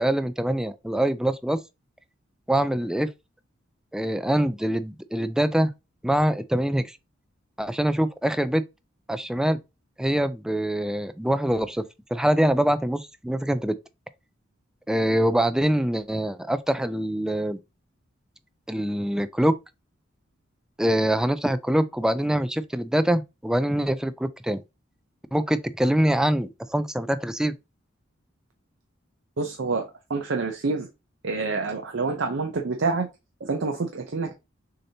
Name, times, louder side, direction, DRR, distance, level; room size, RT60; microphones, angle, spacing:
voice 1, 0.0-1.6 2.5-3.1 3.9-5.7 6.0-7.0 7.6-8.6 9.1-9.6 10.0-11.8 12.1-13.7 14.9-17.6 18.7-19.6 20.8-24.6 25.3-27.6, right 1 dB, 5° right, 0.3 m, -24 dB
voice 2, 29.4-30.9 31.2-33.1 33.4-34.3, right 4 dB, 65° right, 0.6 m, -27 dB
6.4 x 2.8 x 2.8 m
head